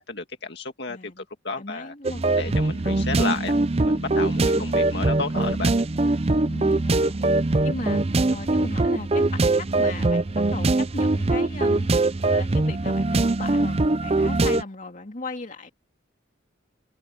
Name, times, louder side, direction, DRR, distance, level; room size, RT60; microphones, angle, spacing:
voice 1, 0.0-1.9 2.4-5.7, left 3 dB, 55° left, 2.2 m, -32 dB
voice 2, 0.9-1.3 1.6-3.0 4.4-4.7 6.4-7.3 7.6-11.9 12.3-15.7, left 2 dB, 40° left, 2.6 m, -37 dB
sound 1, 2.0-14.6, right 2 dB, 30° right, 0.6 m, -22 dB
head